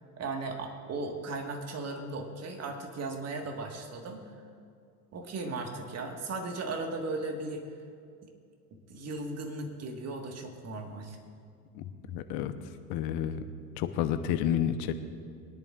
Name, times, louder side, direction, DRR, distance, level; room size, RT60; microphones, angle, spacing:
voice 1, 0.2-4.2 5.1-7.6 8.7-11.2, right 3 dB, 35° right, 3 dB, 1.7 m, -37 dB
voice 2, 11.7-12.5 12.9-13.4 13.8-14.9, left 10 dB, 50° left, 10 dB, 0.9 m, -30 dB
22.5 x 10.5 x 2.5 m, 2.3 s
figure-of-eight pair, 75°, 46 cm